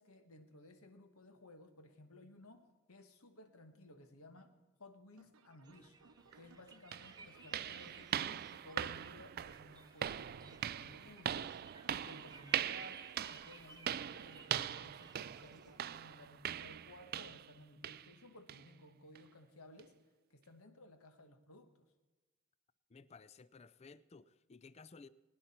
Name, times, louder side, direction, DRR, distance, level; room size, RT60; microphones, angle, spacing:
voice 1, 0.0-6.0 6.3-19.9 20.3-21.9, left 1 dB, 80° left, 7 dB, 1.4 m, -58 dB
sound 1, 5.2-15.8, right 4 dB, 85° right, 0.8 m, -65 dB
sound 2, 5.6-15.8, right 3 dB, 20° right, 0.8 m, -60 dB
sound 3, 6.3-6.4 6.9-17.6 17.8-18.1 18.5-18.7 19.2-19.3 19.8-19.9, right 10 dB, 45° right, 0.3 m, -41 dB
voice 2, 22.9-25.1, left 4 dB, 30° left, 16 dB, 0.4 m, -57 dB
20.5 x 10.5 x 4.3 m, 1.2 s
head